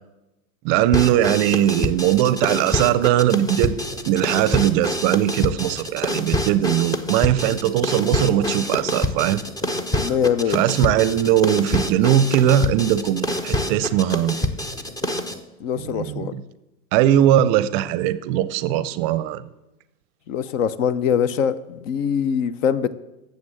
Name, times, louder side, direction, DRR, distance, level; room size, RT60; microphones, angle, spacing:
voice 1, 0.6-3.7 4.0-9.4 10.5-14.4 15.8-16.4 16.9-19.4, right 11 dB, 40° right, 17 dB, 0.5 m, -20 dB
sound 1, 0.9-15.4, left 1 dB, 10° left, 0.5 m, -26 dB
voice 2, 10.0-10.7 15.6-16.3 20.3-23.0, left 8 dB, 55° left, 17 dB, 0.8 m, -23 dB
9.4 x 7.1 x 7.6 m, 0.99 s
hypercardioid pair, 105°, 45 cm